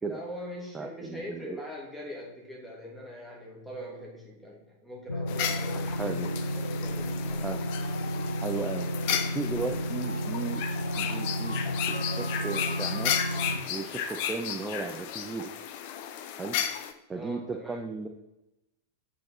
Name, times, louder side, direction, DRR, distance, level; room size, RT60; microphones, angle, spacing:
voice 1, 0.0-7.6 17.1-17.9, left 1 dB, ahead, -3 dB, 2.6 m, -42 dB
voice 2, 0.7-1.7 5.7-6.3 7.3-7.6 8.4-13.1 13.7-15.5 16.4-16.6 17.1-18.1, right 4 dB, 15° right, 4 dB, 0.6 m, -36 dB
sound 1, 5.1-13.6, equal, 80° left, 0.6 m, -32 dB
sound 2, 5.3-16.9, left 9 dB, 50° left, 0.7 m, -34 dB
7.8 x 5.6 x 4.3 m, 0.88 s
figure-of-eight pair, 90°, 0 cm